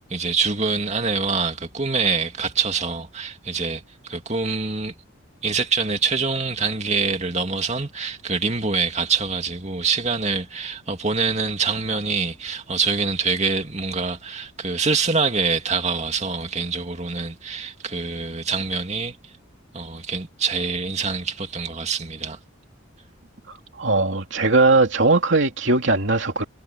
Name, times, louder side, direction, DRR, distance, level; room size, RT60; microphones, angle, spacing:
voice 1, 0.1-4.9 5.4-19.2 19.7-22.4, right 4 dB, 35° right, 2.5 m, -25 dB
voice 2, 23.8-26.4, right 3 dB, 65° right, 2.8 m, -19 dB
head